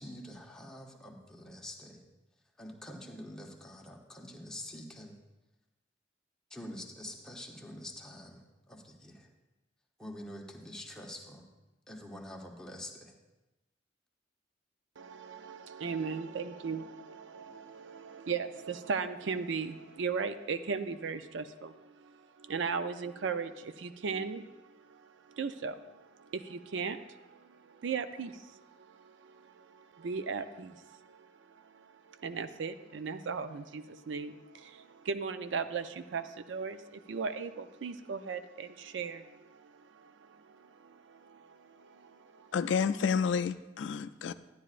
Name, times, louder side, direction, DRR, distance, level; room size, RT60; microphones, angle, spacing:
voice 1, 0.0-2.0 2.6-5.1 6.5-9.3 10.0-11.5 11.9-13.1, left 1 dB, 5° left, 0.9 m, -46 dB
voice 2, 15.0-42.5, right 5 dB, 75° right, 0.5 m, -38 dB
voice 3, 42.5-44.3, left 6 dB, 75° left, 0.3 m, -30 dB
12.0 x 9.6 x 2.5 m
head